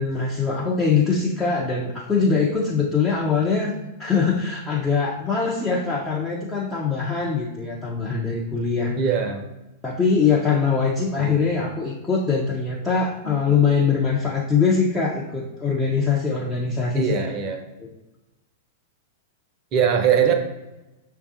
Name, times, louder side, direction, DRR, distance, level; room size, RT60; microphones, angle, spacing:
voice 1, 0.0-3.7 4.0-8.9 9.8-17.2 17.8-17.9, left 5 dB, 15° left, -5 dB, 0.6 m, -22 dB
voice 2, 9.0-9.4 11.2-11.7 16.9-17.6 19.7-20.3, right 7 dB, 35° right, 5 dB, 0.6 m, -22 dB
6.6 x 2.3 x 2.6 m, 1.0 s
figure-of-eight pair, 95°, 0 cm